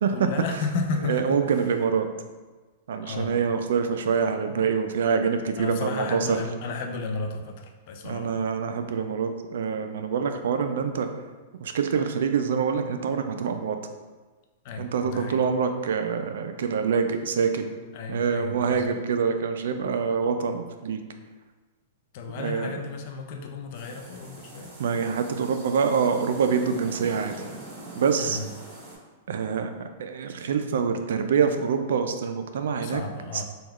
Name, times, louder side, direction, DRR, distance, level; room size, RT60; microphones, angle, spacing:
voice 1, 0.1-1.4 3.0-3.4 4.5-4.6 5.6-8.5 14.6-15.4 17.9-19.0 22.1-24.7 28.2-28.5 32.6-33.4, left 4 dB, 55° left, 4 dB, 0.4 m, -33 dB
voice 2, 1.1-2.1 2.9-6.4 8.0-11.1 11.6-13.8 14.8-17.7 18.1-21.0 22.3-22.8 24.8-27.5 28.0-28.4 29.3-33.0 33.3-33.4, right 6 dB, 80° right, 7 dB, 0.3 m, -25 dB
sound 1, 23.7-29.0, right 2 dB, 45° right, 0.9 m, -43 dB
3.4 x 2.3 x 3.1 m, 1.3 s
hypercardioid pair, 140°, 0 cm